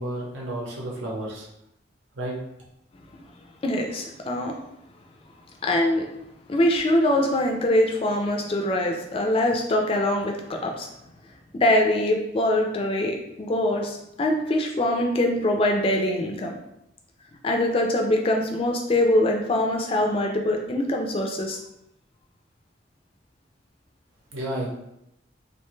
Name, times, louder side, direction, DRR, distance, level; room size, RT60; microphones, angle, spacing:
voice 1, 0.0-1.5 2.1-2.4 24.3-24.7, right 1 dB, 85° right, -3 dB, 0.8 m, -31 dB
voice 2, 3.6-4.5 5.6-6.1 6.5-10.9 11.5-16.6 17.4-21.6, left 1 dB, 30° left, 2 dB, 0.3 m, -23 dB
2.6 x 2.2 x 3.0 m, 0.83 s
head